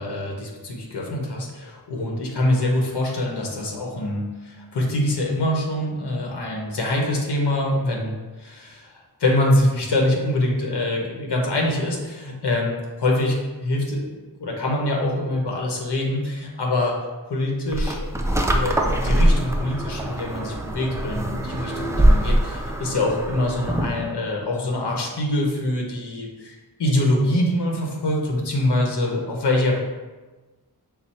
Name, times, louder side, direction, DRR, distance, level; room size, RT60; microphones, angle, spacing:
voice 1, 0.0-17.0 17.3-18.2 18.5-29.8, left 1 dB, 75° left, 0 dB, 1.0 m, -24 dB
sound 1, 17.7-24.1, right 1 dB, 10° right, 0.3 m, -22 dB
6.0 x 2.0 x 4.1 m, 1.2 s
wide cardioid pair, 105°, 40 cm